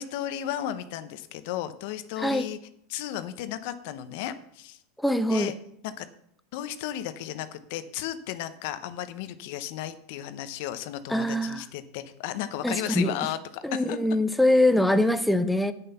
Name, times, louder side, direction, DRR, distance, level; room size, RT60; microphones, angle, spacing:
voice 1, 0.0-2.6 2.9-4.8 5.3-5.5 5.8-6.1 6.5-14.0, left 11 dB, 65° left, 12 dB, 0.8 m, -34 dB
voice 2, 2.2-2.5 5.0-5.5 11.1-11.6 12.6-13.1 13.6-15.7, left 1 dB, ahead, 9 dB, 0.5 m, -23 dB
8.6 x 6.9 x 5.7 m, 0.72 s
hypercardioid pair, 110°, 0 cm